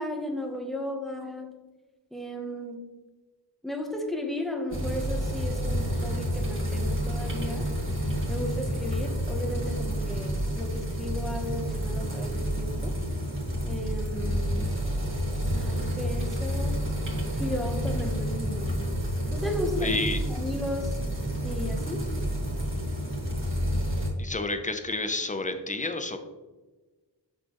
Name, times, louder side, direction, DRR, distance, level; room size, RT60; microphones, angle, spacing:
voice 1, 0.0-1.5 2.1-2.8 3.6-7.7 8.3-13.0 13.6-14.7 15.5-16.8 17.3-18.9 19.3-21.0 21.4-22.1, left 1 dB, ahead, 3 dB, 1.0 m, -35 dB
sound 1, 4.7-24.1, equal, 30° right, 1.6 m, -29 dB
voice 2, 19.8-20.2 24.2-26.2, left 3 dB, 20° left, 7 dB, 0.6 m, -30 dB
6.3 x 6.0 x 3.0 m, 1.2 s
wide cardioid pair, 90°, 42 cm